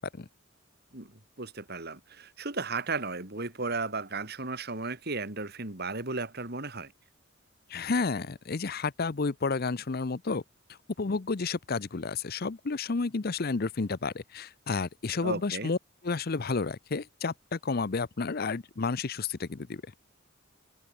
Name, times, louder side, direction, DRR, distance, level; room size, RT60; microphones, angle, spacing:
voice 1, 1.4-6.9 15.2-15.7, right 3 dB, 50° right, 3.1 m, -34 dB
voice 2, 7.7-10.4 11.0-19.8, left 4 dB, 50° left, 0.7 m, -31 dB
head